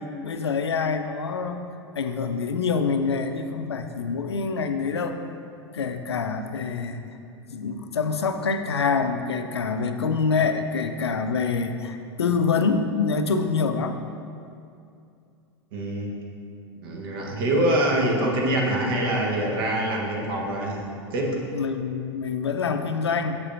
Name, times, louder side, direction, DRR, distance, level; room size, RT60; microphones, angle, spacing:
voice 1, 0.0-1.7 2.0-5.2 5.7-7.0 7.5-14.0 21.5-23.4, left 5 dB, 85° left, 8 dB, 0.4 m, -26 dB
voice 2, 15.7-16.1 16.8-20.8 21.1-21.4, right 1 dB, 60° right, -1 dB, 1.2 m, -24 dB
7.0 x 6.6 x 2.6 m, 2.5 s
hypercardioid pair, 95°, 14 cm